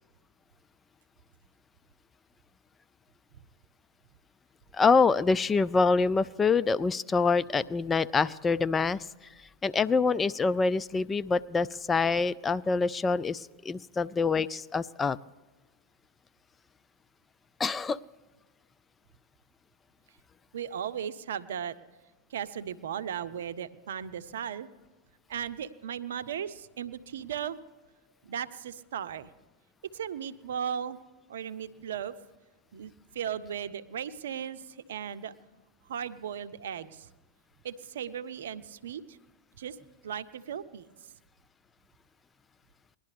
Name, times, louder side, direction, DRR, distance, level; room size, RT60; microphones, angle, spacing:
voice 1, 4.7-9.0 9.6-15.2 17.6-18.0, left 4 dB, 20° left, 16 dB, 0.3 m, -26 dB
voice 2, 20.5-21.7 22.3-24.7 25.3-27.6 28.2-29.3 29.9-31.0 31.3-32.1 32.7-35.3 35.9-37.1 37.6-39.2 39.6-39.8 40.0-40.9, right 8 dB, 75° right, 12 dB, 0.6 m, -36 dB
20.0 x 11.5 x 3.4 m, 1.2 s
hypercardioid pair, 100°, 0 cm